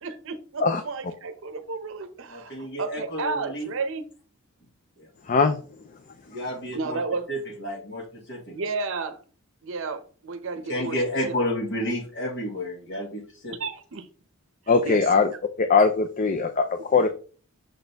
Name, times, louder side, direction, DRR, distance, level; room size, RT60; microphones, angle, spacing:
voice 1, 0.0-4.1 6.7-7.3 8.5-9.2 9.6-11.0 11.3-11.4 13.6-14.1 14.8-15.0, right 4 dB, 60° right, 0.7 m, -32 dB
voice 2, 2.3-3.7 5.0-5.1 6.3-7.0 7.3-8.5 10.7-13.5, left 1 dB, 55° left, 2.1 m, -31 dB
voice 3, 5.3-5.6 14.7-15.3 15.6-17.1, left 4 dB, 35° left, 0.4 m, -20 dB
6.5 x 4.2 x 3.4 m
head